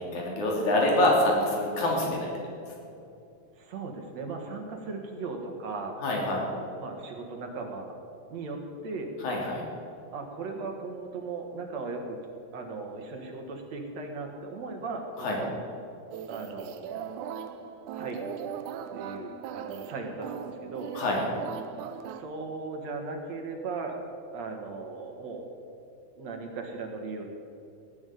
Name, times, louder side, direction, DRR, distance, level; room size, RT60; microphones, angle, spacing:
voice 1, 0.0-2.3 6.0-6.4 9.2-9.6 15.2-15.4 20.9-21.2, left 1 dB, 75° left, -2 dB, 4.5 m, -26 dB
voice 2, 3.5-7.9 8.3-9.1 10.1-12.2 12.5-15.5 16.3-17.3 17.9-18.2 18.9-20.9 22.1-24.0 24.3-25.5 26.1-27.3, right 3 dB, 65° right, 3 dB, 2.8 m, -37 dB
sound 1, 16.1-22.2, right 8 dB, 85° right, 2.3 m, -39 dB
16.5 x 8.7 x 9.3 m, 2.6 s
omnidirectional pair, 3.5 m